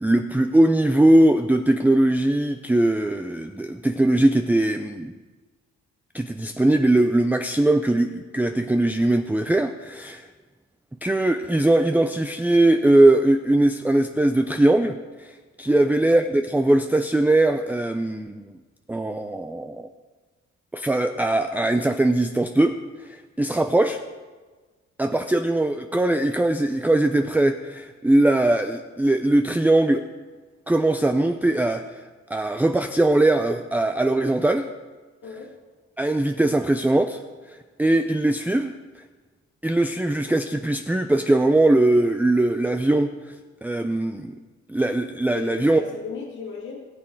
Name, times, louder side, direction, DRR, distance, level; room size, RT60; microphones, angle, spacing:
voice 1, 0.0-5.1 6.1-10.3 11.0-18.4 18.9-19.9 20.7-24.0 25.0-30.0 30.7-32.0 32.3-34.7 36.0-37.2 37.5-39.0 39.6-43.3 43.6-44.3 44.7-45.8, right 1 dB, 5° right, 6 dB, 0.5 m, -20 dB
voice 2, 45.3-46.8, left 5 dB, 80° left, -4 dB, 2.2 m, -36 dB
19.0 x 7.5 x 4.6 m, 1.4 s
cardioid pair, 90°, 30 cm